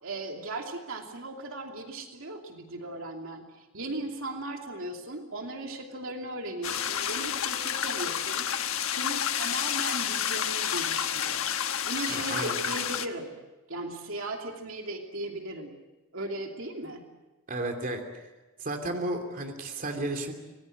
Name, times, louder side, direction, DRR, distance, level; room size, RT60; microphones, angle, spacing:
voice 1, 0.0-8.7 9.0-11.4 11.8-13.3 13.7-15.7 16.1-17.0, right 2 dB, 70° right, 2 dB, 2.8 m, -37 dB
sound 1, 6.6-13.1, left 9 dB, 80° left, 1.3 m, -30 dB
voice 2, 12.1-12.6 17.5-18.0 18.6-20.3, right 2 dB, 45° right, 4 dB, 3.0 m, -33 dB
26.0 x 20.0 x 7.8 m, 1.2 s
head